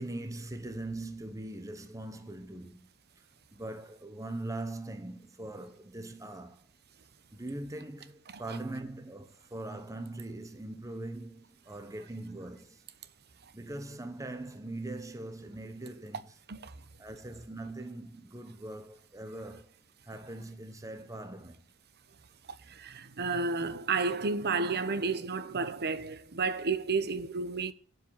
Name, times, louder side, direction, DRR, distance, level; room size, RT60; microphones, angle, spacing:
voice 1, 0.0-2.9 3.5-6.7 7.3-12.8 13.5-16.3 17.0-19.8 20.0-21.6, right 2 dB, 15° right, 0.9 m, -41 dB
voice 2, 22.5-27.7, right 4 dB, 45° right, 0.9 m, -31 dB
7.9 x 7.6 x 7.1 m
head